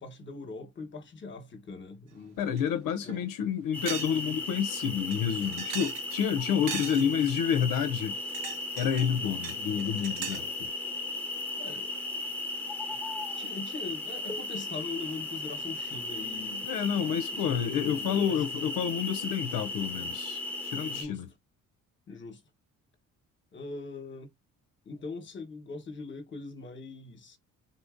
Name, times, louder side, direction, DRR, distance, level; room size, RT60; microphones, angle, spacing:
voice 1, 0.0-2.5 3.0-3.3 11.6-11.9 13.4-16.7 17.0-18.4 20.9-21.2 22.1-22.4 23.5-24.3 24.8-27.4, left 4 dB, 35° left, 1.1 m, -42 dB
voice 2, 2.4-8.2 8.8-10.7 16.6-21.3, left 8 dB, 85° left, 0.6 m, -29 dB
sound 1, 2.6-2.7 3.1-3.2 3.9-4.2 4.5-4.6 5.1-6.2 6.7-7.3 8.1-9.1 9.4-10.5, right 9 dB, 80° right, 0.7 m, -39 dB
sound 2, 3.7-21.0, left 2 dB, 5° left, 1.0 m, -36 dB
4.0 x 2.6 x 2.4 m
cardioid pair, 125°, 33 cm